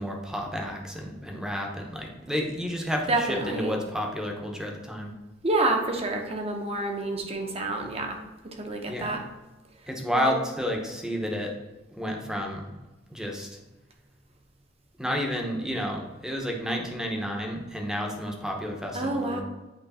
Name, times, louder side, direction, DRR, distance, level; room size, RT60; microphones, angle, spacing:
voice 1, 0.0-5.1 8.8-9.2 9.9-11.5 12.0-12.7 13.1-13.5 15.0-19.4, equal, 5° right, 1 dB, 0.8 m, -31 dB
voice 2, 3.1-3.8 5.4-8.2 8.4-9.3 10.1-10.3 18.9-19.4, right 2 dB, 30° right, 2 dB, 0.9 m, -28 dB
8.1 x 3.2 x 4.2 m, 1.1 s
head